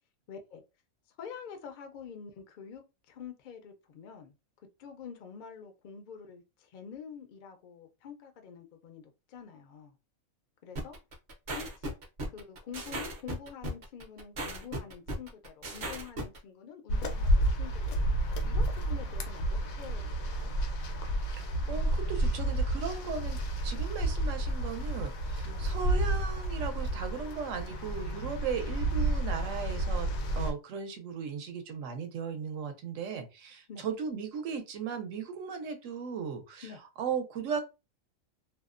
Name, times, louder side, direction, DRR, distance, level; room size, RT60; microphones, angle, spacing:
voice 1, 0.3-0.6 1.2-4.3 4.8-9.9 10.6-11.0 11.5-11.9 12.3-19.4 19.8-20.5 25.4-25.7 33.7-33.8 36.6-36.8, left 7 dB, 70° left, 0.4 m, -47 dB
sound 1, 10.8-16.4, right 1 dB, 50° right, 0.6 m, -37 dB
sound 2, 16.9-30.5, right 1 dB, 90° left, 1.1 m, -30 dB
voice 2, 21.3-23.4 23.6-30.1 30.4-36.7 37.0-37.6, right 6 dB, 70° right, 0.9 m, -37 dB
2.6 x 2.0 x 2.4 m
omnidirectional pair, 1.4 m